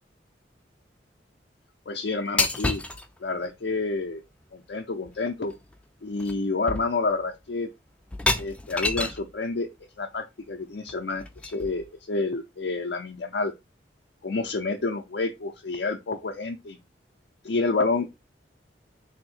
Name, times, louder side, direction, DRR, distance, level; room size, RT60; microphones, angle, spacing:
voice 1, 1.9-2.8 3.2-4.2 4.5-5.5 6.0-7.7 8.4-9.7 10.0-13.5 14.2-16.8 17.4-18.1, left 3 dB, 65° left, 0.5 m, -29 dB
sound 1, 2.4-3.1 5.1-5.2 5.5-5.8 6.2-6.4 6.7-7.2 8.1-9.3 10.9-11.9, left 2 dB, 5° left, 0.4 m, -29 dB
3.5 x 2.7 x 4.1 m
head